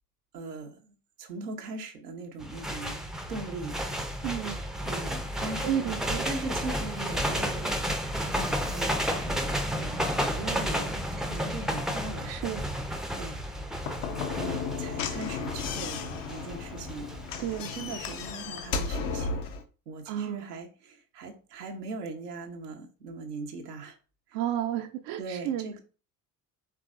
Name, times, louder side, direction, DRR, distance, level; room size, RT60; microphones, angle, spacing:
voice 1, 0.3-3.0 3.3-3.8 4.8-6.0 6.2-8.1 8.3-12.4 13.2-13.4 14.3-17.1 17.7-19.5 19.9-24.0 24.3-24.4 25.2-25.8, right 3 dB, 80° right, 0.8 m, -40 dB
sound 1, 2.4-18.3, equal, ahead, 0.5 m, -32 dB
voice 2, 4.2-4.6 5.6-6.3 12.2-12.6 17.4-17.7 20.1-20.5 24.3-25.7, right 10 dB, 45° right, 0.5 m, -31 dB
Slam / Knock, 13.8-19.6, left 5 dB, 45° left, 0.7 m, -34 dB
4.6 x 3.2 x 2.5 m
figure-of-eight pair, 60°, 47 cm